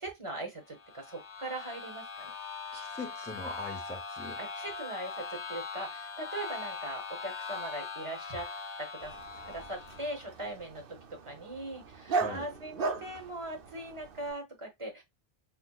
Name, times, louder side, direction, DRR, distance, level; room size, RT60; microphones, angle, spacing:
voice 1, 0.0-2.3 4.4-8.5 8.8-9.1 9.4-10.8 11.1-15.0, right 1 dB, 30° right, 0.9 m, -40 dB
sound 1, 0.7-10.3, left 4 dB, 90° left, 1.0 m, -41 dB
voice 2, 2.7-4.4 12.2-12.5, left 2 dB, 10° left, 0.6 m, -41 dB
Dog, 9.0-14.3, right 4 dB, 60° right, 0.8 m, -38 dB
5.9 x 2.0 x 2.3 m
omnidirectional pair, 1.1 m